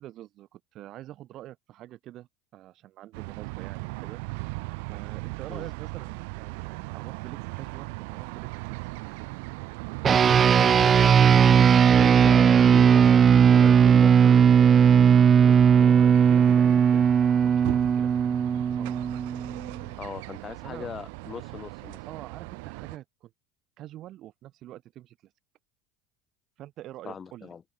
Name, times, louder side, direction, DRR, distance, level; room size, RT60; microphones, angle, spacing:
voice 1, 0.0-8.9 15.1-18.1 18.7-19.1 20.6-20.9 22.1-23.3 23.8-25.2 26.6-27.5, right 14 dB, 55° right, 3.7 m, -45 dB
sound 1, 3.1-23.0, right 30 dB, 70° right, 5.0 m, -38 dB
sound 2, 10.0-19.7, right 7 dB, 35° right, 0.9 m, -18 dB
voice 2, 10.6-14.7 20.0-22.0 27.0-27.6, left 6 dB, 30° left, 3.7 m, -39 dB
open air
hypercardioid pair, 85°, 0 cm